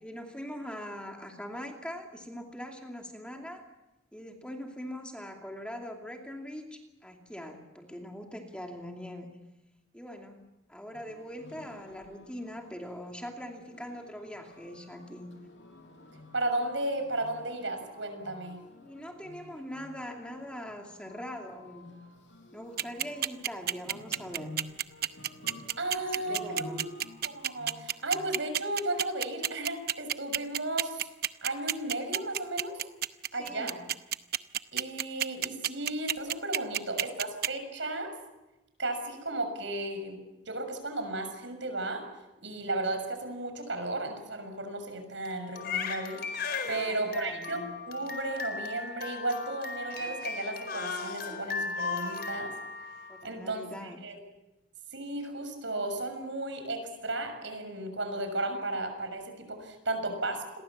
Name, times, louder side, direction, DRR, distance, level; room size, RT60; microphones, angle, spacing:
voice 1, 0.0-3.6 4.1-9.3 9.9-10.4 10.7-15.3 18.8-22.0 22.5-24.6 26.0-26.9 33.4-33.8 46.6-47.6 53.1-54.0, equal, 5° left, 2 dB, 2.6 m, -42 dB
sound 1, 10.9-28.8, left 2 dB, 70° left, 6.0 m, -51 dB
voice 2, 16.3-18.6 25.8-26.9 27.2-31.1 31.4-32.8 33.3-33.7 34.7-38.1 38.8-42.0 42.4-52.5 53.2-54.2 54.9-60.6, right 2 dB, 70° right, 7 dB, 6.5 m, -34 dB
sound 2, 22.8-37.5, right 11 dB, 50° right, 0.8 m, -29 dB
Crying sobbing, 45.2-53.4, left 4 dB, 55° left, 4.5 m, -37 dB
29.0 x 22.5 x 7.3 m, 0.99 s
head